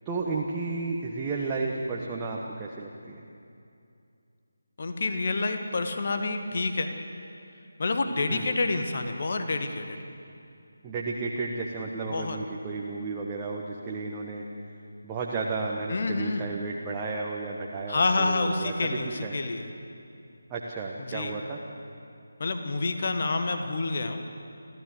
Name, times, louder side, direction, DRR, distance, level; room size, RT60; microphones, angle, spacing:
voice 1, 0.0-3.2 8.3-8.5 10.8-14.4 15.0-19.3 20.5-21.6, right 3 dB, 15° right, -3 dB, 1.3 m, -33 dB
voice 2, 4.8-6.9 7.8-10.0 12.1-12.4 15.9-16.5 17.9-19.7 21.1-21.3 22.4-24.3, left 3 dB, 40° left, 6 dB, 1.6 m, -28 dB
29.5 x 14.5 x 8.0 m, 2.6 s
figure-of-eight pair, 155°, 0 cm